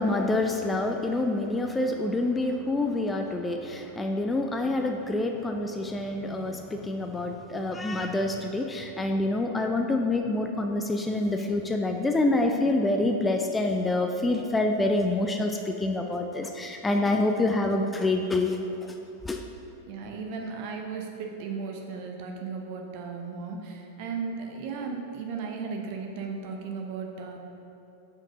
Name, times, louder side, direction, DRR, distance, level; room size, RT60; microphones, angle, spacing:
voice 1, 0.0-18.9 19.2-19.4, left 2 dB, 10° left, 4 dB, 0.4 m, -27 dB
voice 2, 19.9-27.4, right 5 dB, 45° right, 2 dB, 0.8 m, -35 dB
6.1 x 4.6 x 4.9 m, 2.9 s
figure-of-eight pair, 90°, 0 cm